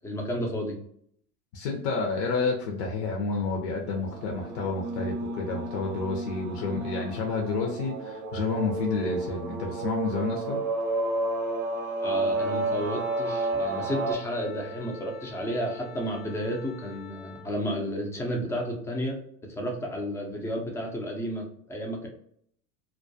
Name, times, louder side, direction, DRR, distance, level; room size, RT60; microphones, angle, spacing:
voice 1, 0.0-0.8 12.0-19.2 19.6-22.1, equal, 5° left, 1 dB, 0.3 m, -32 dB
voice 2, 1.5-10.6, left 4 dB, 55° left, 1 dB, 0.6 m, -30 dB
sound 1, 3.8-14.1, right 2 dB, 50° right, 0.6 m, -31 dB
Wind instrument woodwind instrument, 12.3-17.5, left 5 dB, 75° left, 1.0 m, -46 dB
2.2 x 2.2 x 2.6 m, 0.66 s
hypercardioid pair, 100°, 43 cm